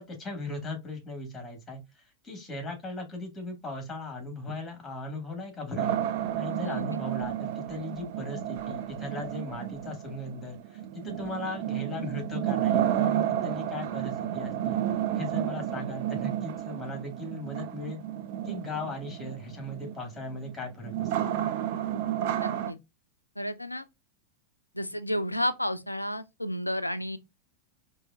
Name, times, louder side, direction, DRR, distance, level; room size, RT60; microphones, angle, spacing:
voice 1, 0.0-14.8 15.1-18.0 18.4-21.3, left 2 dB, 15° left, 2.0 m, -38 dB
sound 1, 5.8-22.7, right 11 dB, 50° right, 0.5 m, -31 dB
voice 2, 6.6-7.0 22.4-22.8 23.4-23.9 24.7-27.2, equal, 85° left, 0.4 m, -32 dB
4.7 x 2.7 x 2.6 m
figure-of-eight pair, 90°, 0 cm